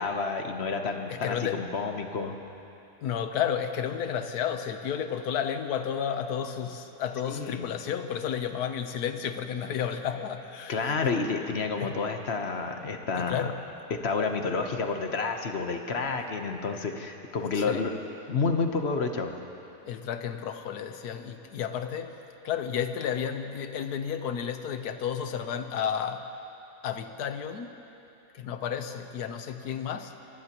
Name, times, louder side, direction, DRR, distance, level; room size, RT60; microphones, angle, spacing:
voice 1, 0.0-2.3 7.3-7.7 10.7-13.5 13.9-17.9 18.3-19.3, left 4 dB, 45° left, 5 dB, 1.1 m, -30 dB
voice 2, 1.2-1.6 3.0-11.2 11.8-11.9 13.2-13.5 17.5-17.8 19.8-22.1 22.4-26.3 26.8-27.7 28.3-30.1, left 8 dB, 75° left, 8 dB, 1.4 m, -32 dB
25.0 x 19.0 x 3.0 m, 3.0 s
omnidirectional pair, 1.7 m